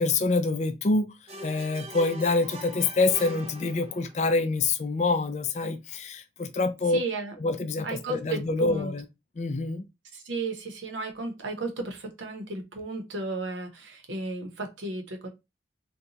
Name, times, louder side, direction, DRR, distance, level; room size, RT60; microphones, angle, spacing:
voice 1, 0.0-7.0 7.4-9.0 9.4-9.9, left 3 dB, 35° left, 0.4 m, -26 dB
sound 1, 1.3-4.2, right 1 dB, 30° right, 0.5 m, -42 dB
voice 2, 6.9-7.3 7.8-8.9 10.1-15.3, right 2 dB, 85° right, 0.8 m, -34 dB
3.8 x 2.2 x 2.8 m
head